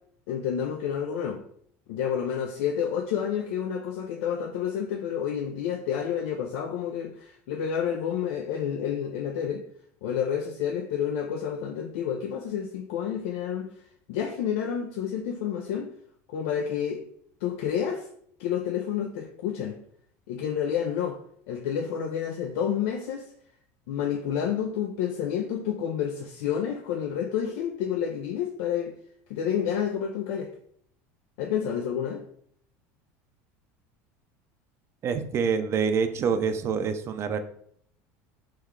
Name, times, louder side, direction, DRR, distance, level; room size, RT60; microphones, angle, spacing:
voice 1, 0.3-1.4 1.9-9.6 10.0-13.7 14.1-15.9 16.3-17.1 17.4-18.1 18.4-19.8 20.3-21.2 21.5-23.3 23.9-28.9 29.3-30.5 31.4-32.2, left 8 dB, 80° left, 3 dB, 0.3 m, -29 dB
voice 2, 35.0-37.4, right 6 dB, 35° right, 8 dB, 0.4 m, -26 dB
3.1 x 2.2 x 3.6 m, 0.65 s
supercardioid pair, 115°, 7 cm